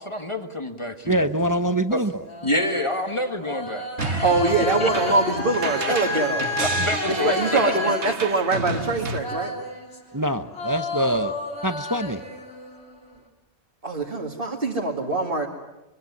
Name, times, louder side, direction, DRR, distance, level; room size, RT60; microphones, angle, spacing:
voice 1, 0.0-1.2 1.9-2.0 2.4-4.3 4.8-5.0 6.1-6.2 6.6-7.8, left 1 dB, 25° left, 6 dB, 1.5 m, -27 dB
voice 2, 1.1-2.3 10.1-11.3 11.6-12.2, right 1 dB, 20° right, 9 dB, 0.8 m, -24 dB
sound 1, 1.6-10.2 10.5-13.2, left 2 dB, 60° left, 4.0 m, -32 dB
sound 2, 4.0-9.2, right 3 dB, 70° right, 1.7 m, -31 dB
voice 3, 4.2-6.5 7.1-9.5 13.8-15.5, right 3 dB, 45° right, -1 dB, 2.4 m, -23 dB
24.0 x 22.5 x 9.6 m, 0.99 s
omnidirectional pair, 1.2 m